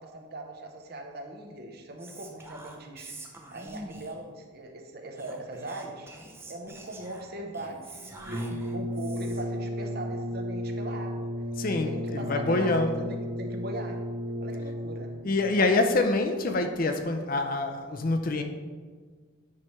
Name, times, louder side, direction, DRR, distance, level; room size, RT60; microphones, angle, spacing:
voice 1, 0.0-3.1 3.5-6.1 6.5-11.3 11.6-14.0 14.4-15.1, right 1 dB, 45° right, 3 dB, 0.9 m, -40 dB
Whispering, 2.0-4.3 5.1-9.6, right 2 dB, 10° right, 0.6 m, -46 dB
Brass instrument, 8.2-15.4, equal, 70° right, 2.3 m, -34 dB
voice 2, 11.6-13.0 15.2-18.4, left 2 dB, 40° left, 6 dB, 0.5 m, -26 dB
9.7 x 3.3 x 5.6 m, 1.5 s
head